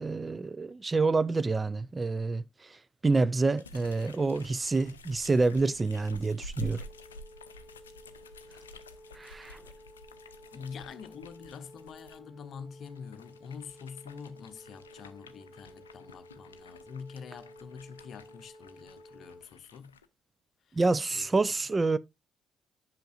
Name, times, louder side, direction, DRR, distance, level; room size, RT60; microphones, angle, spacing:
voice 1, 0.0-2.4 3.0-6.8 9.2-9.6 20.8-22.0, right 3 dB, 25° right, 0.4 m, -27 dB
sound 1, 3.6-12.2 12.8-20.1, left 1 dB, 80° left, 0.4 m, -50 dB
sound 2, 6.8-19.4, equal, 35° left, 2.1 m, -54 dB
voice 2, 10.5-20.0 20.7-20.8 21.1-21.3, left 6 dB, 50° left, 0.7 m, -46 dB
10.0 x 5.8 x 2.5 m
figure-of-eight pair, 45°, 0 cm